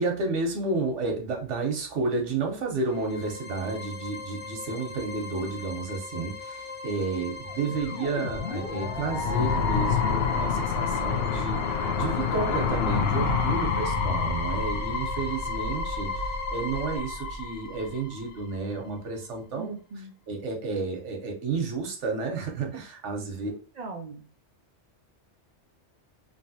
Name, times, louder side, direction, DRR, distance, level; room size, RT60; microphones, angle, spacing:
voice 1, 0.0-11.6 11.9-16.1 16.5-19.7 20.3-23.5, right 3 dB, 80° right, 2 dB, 1.2 m, -31 dB
sound 1, 2.8-17.0, left 4 dB, 50° left, 1.0 m, -40 dB
sound 2, 7.5-18.4, left 5 dB, 65° left, 0.8 m, -28 dB
voice 2, 19.6-20.1 23.5-24.2, right 3 dB, 60° right, 2 dB, 0.4 m, -40 dB
3.2 x 2.6 x 2.7 m, 0.38 s
omnidirectional pair, 1.2 m